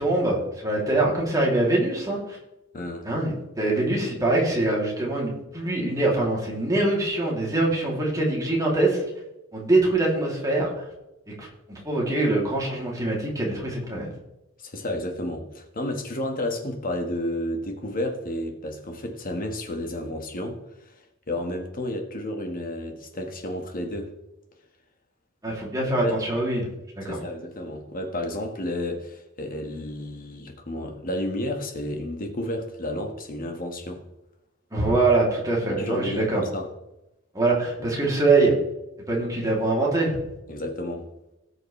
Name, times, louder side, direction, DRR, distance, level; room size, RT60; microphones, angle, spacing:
voice 1, 0.0-2.4 3.0-9.0 9.5-10.9 11.4-14.1 25.4-26.7 26.9-27.2 34.7-36.4 37.3-38.5 39.1-40.2, right 2 dB, 15° right, -3 dB, 2.9 m, -23 dB
voice 2, 2.7-3.1 14.6-21.0 21.3-24.1 26.0-26.2 27.1-34.0 35.8-36.7 37.8-37.9 40.5-41.1, left 1 dB, 40° left, 3 dB, 1.6 m, -31 dB
18.0 x 6.4 x 3.3 m, 0.91 s
head